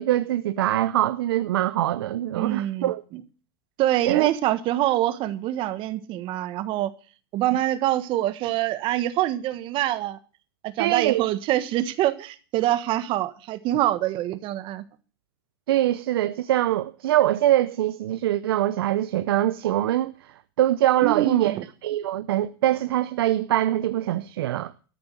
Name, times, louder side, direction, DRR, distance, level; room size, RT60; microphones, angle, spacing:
voice 1, 0.0-3.0 4.1-4.3 10.8-11.2 15.7-20.1 20.6-21.5 21.8-24.7, right 13 dB, 80° right, 0.6 m, -23 dB
voice 2, 2.3-3.2 3.8-6.9 7.3-10.2 10.6-14.8 21.0-21.6, right 14 dB, 45° right, 1.4 m, -25 dB
13.5 x 7.0 x 7.8 m
hypercardioid pair, 120°, 12 cm